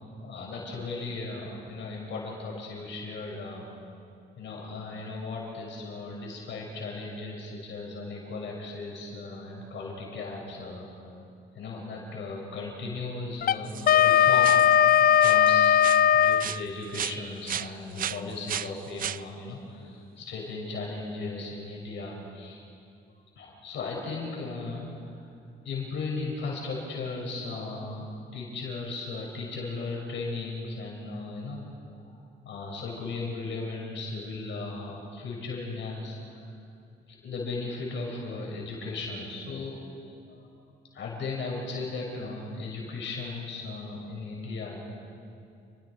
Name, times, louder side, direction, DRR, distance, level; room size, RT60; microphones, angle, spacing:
voice 1, 0.2-3.7 4.4-11.1 11.5-14.6 15.2-22.6 23.4-25.2 25.6-28.1 28.3-31.7 32.4-36.4 37.2-40.5 40.9-44.8, left 3 dB, 70° left, -2 dB, 5.9 m, -36 dB
Wind instrument woodwind instrument, 13.4-16.5, left 9 dB, 50° left, 0.5 m, -19 dB
sound 1, 13.6-14.1 14.4-14.9 15.2-15.5 15.8-17.2 17.5-19.2, right 10 dB, 45° right, 0.4 m, -35 dB
29.5 x 21.5 x 4.8 m, 2.5 s
cardioid pair, 90°, 20 cm